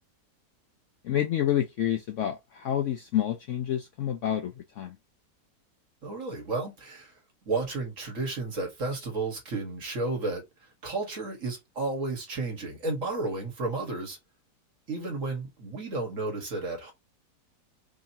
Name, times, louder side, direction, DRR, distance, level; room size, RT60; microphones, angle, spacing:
voice 1, 1.0-4.9, left 11 dB, 90° left, 0.6 m, -28 dB
voice 2, 6.0-7.1 7.5-10.5 10.8-14.2 14.9-16.9, right 3 dB, 50° right, 1.7 m, -32 dB
5.0 x 2.8 x 2.7 m
omnidirectional pair, 1.9 m